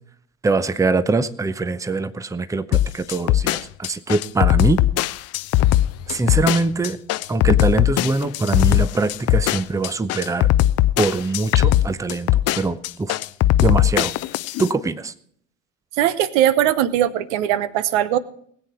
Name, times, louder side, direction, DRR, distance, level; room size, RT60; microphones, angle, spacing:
voice 1, 0.4-4.8 6.1-7.0 7.3-10.5 11.0-13.2 13.6-14.1 14.6-15.1, right 3 dB, 10° right, 14 dB, 0.7 m, -23 dB
sound 1, 2.7-14.7, left 14 dB, 40° left, 0.5 m, -19 dB
voice 2, 16.0-18.2, right 11 dB, 60° right, 16 dB, 1.0 m, -19 dB
20.0 x 8.7 x 4.5 m, 0.64 s
figure-of-eight pair, 60°, 39 cm